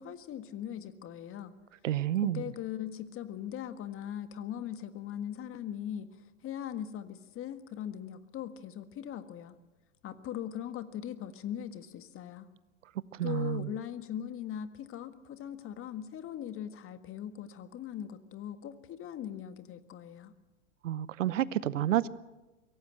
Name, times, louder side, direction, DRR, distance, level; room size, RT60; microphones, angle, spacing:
voice 1, 0.0-1.5 2.1-6.1 6.4-9.5 10.0-12.5 13.2-20.3, left 10 dB, 35° left, 10 dB, 1.7 m, -40 dB
voice 2, 1.8-2.4 13.2-13.7 20.8-22.1, right 12 dB, 75° right, 19 dB, 0.9 m, -29 dB
23.5 x 17.5 x 7.8 m, 1.1 s
hypercardioid pair, 95°, 37 cm